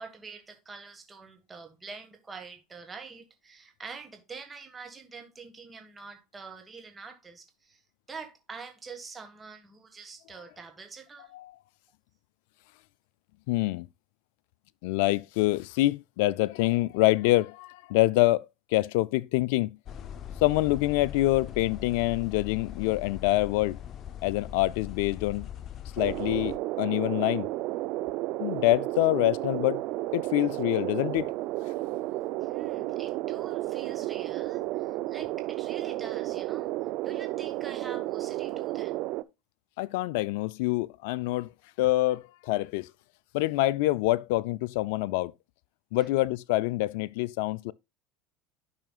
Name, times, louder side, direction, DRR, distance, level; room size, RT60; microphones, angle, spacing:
voice 1, 0.0-7.8 8.1-11.3 32.4-39.1 46.0-46.1, right 4 dB, 20° right, 1.6 m, -46 dB
voice 2, 13.5-13.9 14.8-18.5 18.7-19.7 20.4-23.8 24.2-25.5 26.0-27.5 28.4-29.8 30.1-31.3 39.8-41.5 41.8-42.9 43.3-45.3 45.9-47.7, left 17 dB, 75° left, 0.3 m, -26 dB
sound 1, 19.9-26.6, left 9 dB, 45° left, 0.7 m, -41 dB
sound 2, 26.0-39.2, right 17 dB, 60° right, 0.5 m, -32 dB
11.0 x 5.7 x 2.4 m
hypercardioid pair, 95°, 0 cm